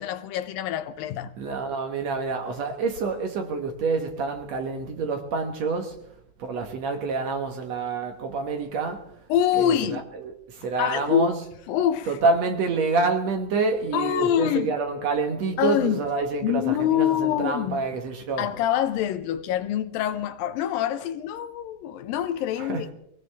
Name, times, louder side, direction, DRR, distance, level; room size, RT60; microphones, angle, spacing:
voice 1, 0.0-1.3 9.3-10.0 10.8-11.3 11.7-12.2 13.9-14.8 15.6-16.0 16.4-17.8 18.4-22.9, left 10 dB, 80° left, 2.6 m, -25 dB
voice 2, 1.4-6.0 6.4-9.1 9.6-11.4 12.1-18.5 22.6-22.9, right 4 dB, 60° right, 2.2 m, -27 dB
23.5 x 18.0 x 3.5 m
omnidirectional pair, 4.1 m